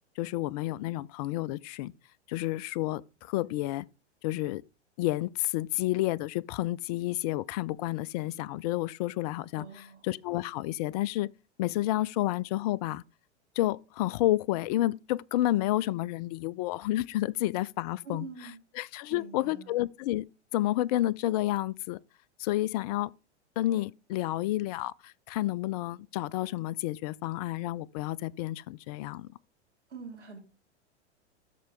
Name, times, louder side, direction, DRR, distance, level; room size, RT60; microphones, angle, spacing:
voice 1, 0.2-1.9 2.3-3.9 4.2-4.6 5.0-11.3 11.6-13.0 13.6-18.3 18.7-20.3 20.5-22.0 22.4-23.1 23.6-29.3, left 15 dB, 35° left, 0.4 m, -30 dB
voice 2, 9.5-10.1 18.0-18.6 19.1-19.7 29.9-30.4, right 4 dB, 80° right, 3.2 m, -44 dB
13.0 x 4.5 x 3.3 m
figure-of-eight pair, 100°, 35 cm